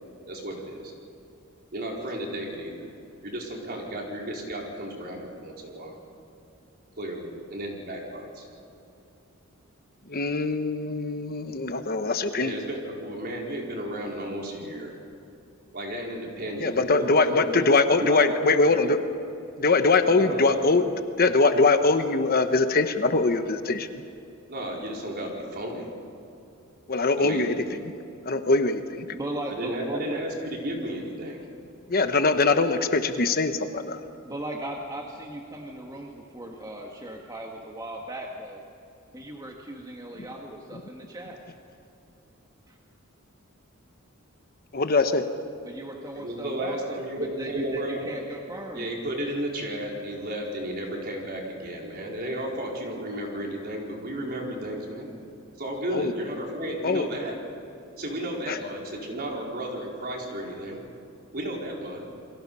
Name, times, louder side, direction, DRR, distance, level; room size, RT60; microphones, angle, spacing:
voice 1, 0.3-0.9 1.7-2.9 3.2-6.0 7.0-8.4 12.3-15.0 15.7-17.6 17.9-18.9 20.1-20.6 24.5-25.9 27.2-27.5 29.6-31.4 46.1-48.2 48.7-55.1 55.6-57.4 58.0-60.8 61.3-62.1, right 1 dB, 50° right, -1 dB, 4.7 m, -33 dB
voice 2, 10.1-12.5 16.6-19.0 19.6-20.8 21.2-24.0 26.9-27.9 28.2-29.1 31.9-34.0 44.7-45.2 55.9-56.1 56.8-57.0 58.5-58.6, left 3 dB, 45° left, 8 dB, 1.1 m, -22 dB
voice 3, 29.1-30.3 34.2-38.6 39.1-41.4 42.7-42.8 45.6-48.9, right 1 dB, 20° right, 0 dB, 1.8 m, -37 dB
29.5 x 23.0 x 5.6 m, 2.7 s
head